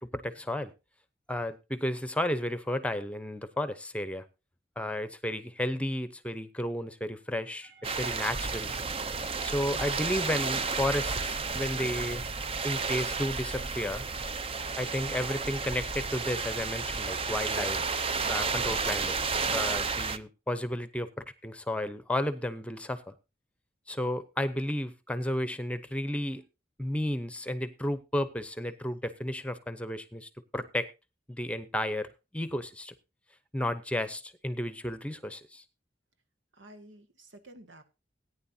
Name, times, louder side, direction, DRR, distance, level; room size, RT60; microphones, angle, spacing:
voice 1, 0.0-0.7 1.3-4.2 4.8-8.7 9.4-12.2 12.6-14.0 14.8-17.8 18.3-19.1 19.5-23.1 23.9-26.4 26.8-30.9 31.3-32.1 32.3-32.9 33.5-35.6, left 1 dB, 5° left, 0.8 m, -33 dB
sound 1, 7.6-13.7, right 4 dB, 65° right, 5.2 m, -62 dB
sound 2, 7.8-20.2, right 4 dB, 30° right, 0.6 m, -32 dB
voice 2, 36.5-37.8, right 1 dB, 85° right, 1.9 m, -51 dB
18.0 x 9.8 x 2.8 m
head